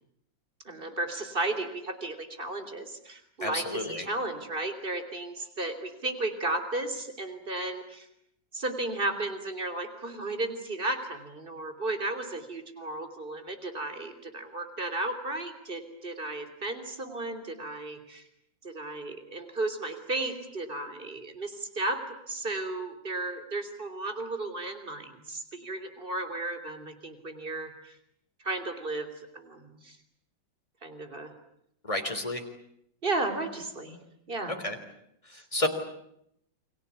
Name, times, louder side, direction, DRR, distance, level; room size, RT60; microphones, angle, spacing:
voice 1, 0.7-8.1 8.5-18.2 18.6-28.0 28.4-29.1 29.3-30.0 30.8-31.3 33.0-34.0 34.3-34.6 35.3-35.4, right 2 dB, 25° right, 8 dB, 3.6 m, -34 dB
voice 2, 3.4-4.1 31.8-32.4 34.5-34.8 35.3-35.7, left 1 dB, 15° left, 5 dB, 3.6 m, -31 dB
29.5 x 24.0 x 8.4 m, 0.75 s
omnidirectional pair, 2.1 m